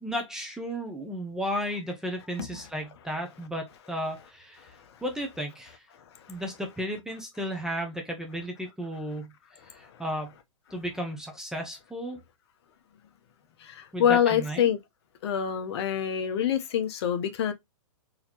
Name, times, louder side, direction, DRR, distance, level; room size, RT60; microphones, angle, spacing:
voice 1, 0.0-4.7 5.0-5.8 6.3-9.3 9.7-10.3 10.7-12.2 13.9-14.7, equal, 5° right, 0.6 m, -34 dB
voice 2, 13.6-14.8 15.2-17.5, left 9 dB, 50° left, 0.9 m, -25 dB
4.1 x 2.8 x 2.9 m
hypercardioid pair, 150°, 17 cm